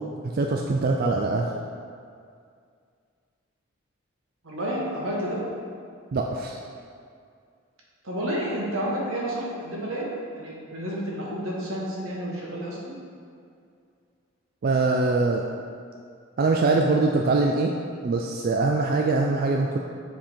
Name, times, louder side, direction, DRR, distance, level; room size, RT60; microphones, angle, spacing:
voice 1, 0.2-1.5 6.1-6.6 14.6-15.4 16.4-17.8 18.0-19.8, right 3 dB, 45° right, 1 dB, 0.3 m, -23 dB
voice 2, 4.4-5.4 8.0-10.1 10.3-12.8, equal, 80° right, -4 dB, 1.5 m, -30 dB
7.4 x 3.6 x 4.5 m, 2.3 s
head